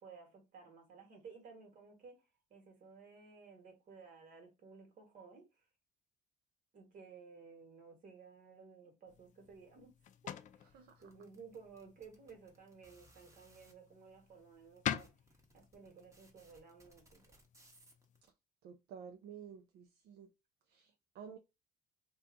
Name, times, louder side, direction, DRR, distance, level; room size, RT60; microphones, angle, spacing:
voice 1, 0.0-5.7 6.7-10.0 10.5-15.1 15.5-17.4, right 5 dB, 50° right, 1.3 m, -56 dB
sound 1, 9.1-18.2, left 9 dB, 50° left, 0.4 m, -47 dB
sound 2, 10.9-13.7 14.4-14.5 14.7-18.3, right 2 dB, 15° right, 1.0 m, -65 dB
voice 2, 18.6-20.3 20.7-21.4, right 7 dB, 70° right, 0.5 m, -52 dB
2.7 x 2.3 x 3.6 m
cardioid pair, 110°, 17 cm